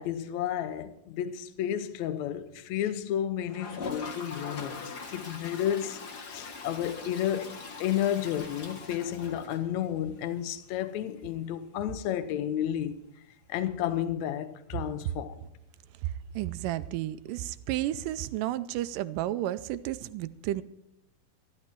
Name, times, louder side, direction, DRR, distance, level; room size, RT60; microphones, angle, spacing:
voice 1, 0.0-13.0 13.5-15.3, left 10 dB, 70° left, 1.8 m, -32 dB
Toilet flush, 3.5-10.2 10.5-10.6 10.8-10.9 11.2-11.3 13.8-13.9 15.2-15.3, left 4 dB, 55° left, 1.1 m, -41 dB
voice 2, 16.0-20.6, right 13 dB, 80° right, 2.1 m, -32 dB
14.0 x 13.0 x 4.5 m
omnidirectional pair, 4.1 m